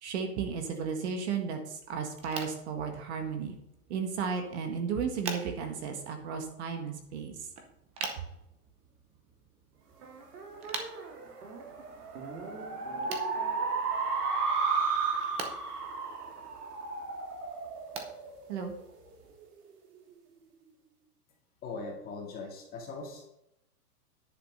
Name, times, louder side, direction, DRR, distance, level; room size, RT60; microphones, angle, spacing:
voice 1, 0.0-3.6 3.9-7.3 18.5-18.7, right 6 dB, 45° right, 5 dB, 1.8 m, -34 dB
sound 1, 2.1-19.4, right 5 dB, 15° right, 0.7 m, -46 dB
sound 2, 10.0-18.8, right 4 dB, 80° right, 3.2 m, -33 dB
voice 2, 21.6-23.3, left 3 dB, 20° left, 0 dB, 2.0 m, -40 dB
10.5 x 5.8 x 5.7 m, 0.82 s
hypercardioid pair, 160°, 46 cm